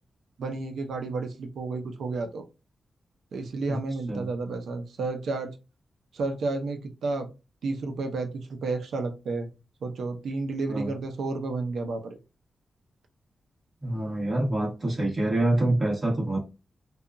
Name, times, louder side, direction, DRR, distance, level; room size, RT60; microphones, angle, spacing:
voice 1, 0.4-2.4 3.3-5.5 6.1-7.3 7.6-9.5 9.8-12.2, right 3 dB, 85° right, 5 dB, 0.5 m, -31 dB
voice 2, 13.8-16.4, right 1 dB, 30° right, -3 dB, 1.4 m, -26 dB
2.8 x 2.3 x 2.5 m, 0.27 s
wide cardioid pair, 140°, 0 cm